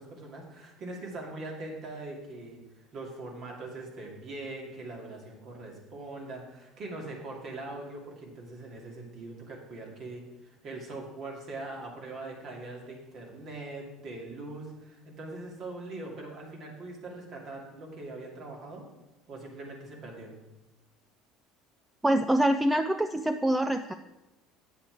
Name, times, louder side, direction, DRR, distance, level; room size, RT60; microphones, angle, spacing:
voice 1, 0.0-18.9 19.3-20.3, right 2 dB, 55° right, -1 dB, 2.4 m, -42 dB
voice 2, 22.0-23.9, right 1 dB, 10° right, 8 dB, 0.4 m, -25 dB
7.9 x 7.6 x 4.6 m, 1.0 s
supercardioid pair, 80°, 0 cm